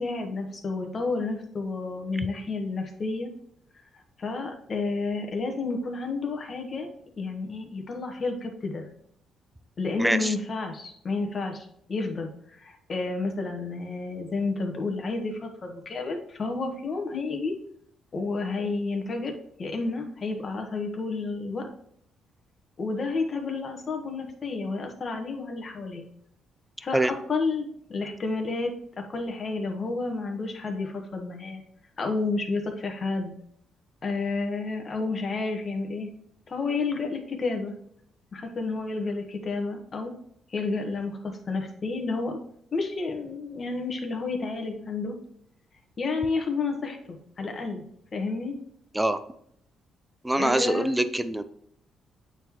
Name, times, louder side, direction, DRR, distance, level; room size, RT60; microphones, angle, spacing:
voice 1, 0.0-3.3 3.9-6.9 7.2-8.8 9.8-17.5 18.1-21.7 22.8-26.0 26.8-27.6 27.9-31.6 32.0-33.3 34.0-36.1 36.5-37.7 38.3-40.1 40.5-42.4 42.7-45.2 46.0-47.8 48.1-48.5 50.4-50.9, left 3 dB, 40° left, 3 dB, 1.3 m, -30 dB
voice 2, 10.0-10.3 26.9-27.1 48.9-49.2 50.2-51.4, right 1 dB, 10° right, 11 dB, 0.5 m, -24 dB
8.9 x 3.7 x 3.0 m, 0.68 s
cardioid pair, 90°, 0 cm